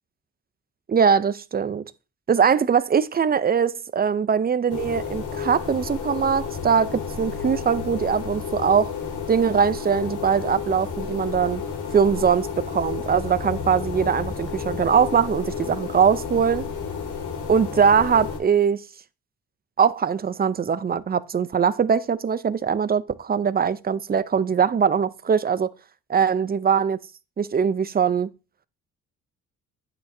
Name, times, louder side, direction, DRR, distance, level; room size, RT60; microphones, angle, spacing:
voice 1, 0.9-1.8 2.3-8.9 9.3-11.6 11.9-16.6 17.5-18.8 19.8-25.7 26.1-27.0 27.4-28.3, right 7 dB, 30° right, 0.7 m, -21 dB
sound 1, 4.7-18.4, left 6 dB, 85° left, 2.4 m, -31 dB
9.5 x 7.9 x 2.8 m
cardioid pair, 90°, 30 cm